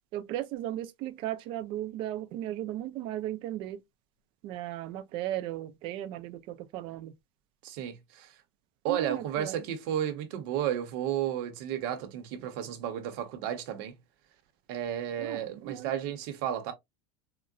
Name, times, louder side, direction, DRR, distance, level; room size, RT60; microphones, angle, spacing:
voice 1, 0.1-3.8 4.4-7.1 8.9-9.6 15.2-15.9, right 13 dB, 40° right, 0.4 m, -36 dB
voice 2, 7.6-8.3 8.8-14.0 14.7-16.7, right 10 dB, 60° right, 0.8 m, -33 dB
3.7 x 2.1 x 2.3 m
supercardioid pair, 165°, 14 cm